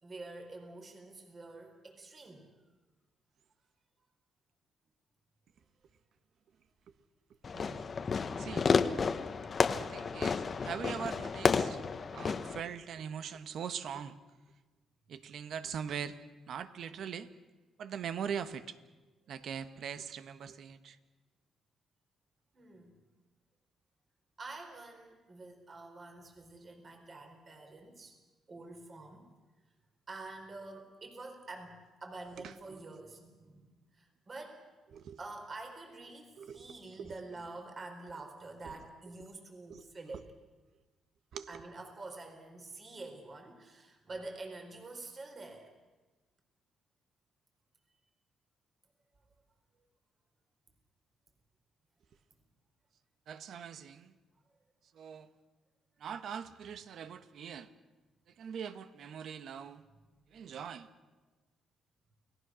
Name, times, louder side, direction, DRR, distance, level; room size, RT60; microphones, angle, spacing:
voice 1, 0.0-2.5 22.5-23.0 24.4-28.2 28.5-29.3 30.1-34.7 35.2-40.3 41.5-45.7, right 2 dB, 35° right, 4 dB, 4.5 m, -47 dB
Fireworks, 7.4-12.6, left 5 dB, 40° left, 1.1 m, -31 dB
voice 2, 7.5-8.7 9.4-14.2 15.1-16.2 16.5-17.3 17.8-18.8 19.3-21.0 32.4-32.8 34.9-35.2 36.4-36.6 37.0-37.1 38.6-38.7 39.7-39.8 41.3-41.6 53.3-54.1 54.9-55.3 56.0-57.7 58.4-59.8 60.3-60.9, right 7 dB, 65° right, 11 dB, 1.3 m, -42 dB
29.5 x 19.0 x 6.4 m, 1.2 s
cardioid pair, 90°, 0 cm